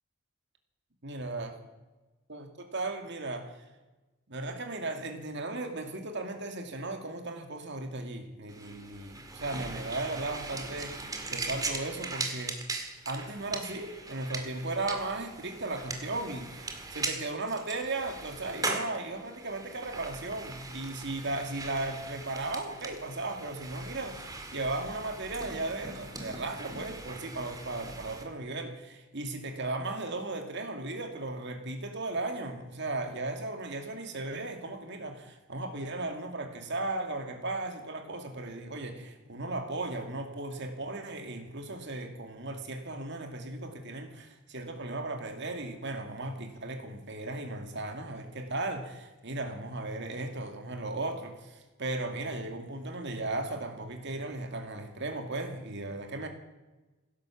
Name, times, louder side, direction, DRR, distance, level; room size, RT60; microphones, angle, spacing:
voice 1, 1.0-1.6 2.3-3.6 4.3-11.0 11.3-12.6 13.1-56.3, right 2 dB, 55° right, 5 dB, 2.4 m, -36 dB
sound 1, 8.5-28.2, right 3 dB, 15° right, 1.9 m, -40 dB
16.5 x 11.5 x 7.3 m, 1.1 s
head